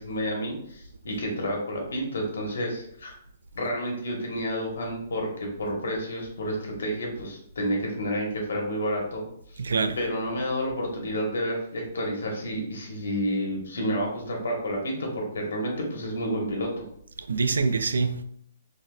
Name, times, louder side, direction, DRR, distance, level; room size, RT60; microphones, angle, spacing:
voice 1, 0.0-3.1 3.5-9.2 9.5-9.6 10.0-16.8, equal, 80° left, 1.1 m, -30 dB
voice 2, 9.6-10.0 17.3-18.2, right 4 dB, 90° right, 0.3 m, -25 dB
3.9 x 2.6 x 2.3 m
hypercardioid pair, 155°, 0 cm